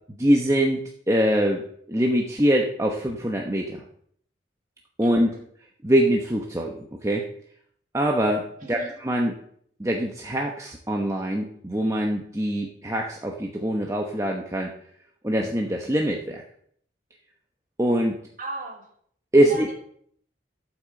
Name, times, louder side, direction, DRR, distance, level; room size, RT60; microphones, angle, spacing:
voice 1, 0.2-3.8 5.0-5.3 5.8-7.3 7.9-9.3 9.8-14.7 15.2-16.4 17.8-18.2 19.3-19.7, equal, 15° right, 1 dB, 1.0 m, -23 dB
voice 2, 5.0-5.4 8.6-8.9 18.4-18.9 19.4-19.7, right 2 dB, 45° right, 0 dB, 3.1 m, -36 dB
12.5 x 6.1 x 7.7 m, 0.65 s
head